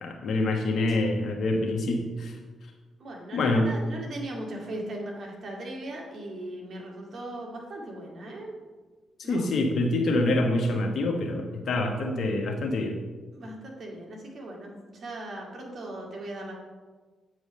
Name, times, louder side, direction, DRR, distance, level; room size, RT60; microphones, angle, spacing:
voice 1, 0.0-2.3 3.3-3.7 9.3-13.0, left 2 dB, 60° left, 2 dB, 1.4 m, -26 dB
voice 2, 3.0-8.5 9.2-9.5 13.3-16.5, right 1 dB, 55° right, -1 dB, 2.2 m, -38 dB
8.5 x 4.8 x 5.4 m, 1.3 s
hypercardioid pair, 40°, 0 cm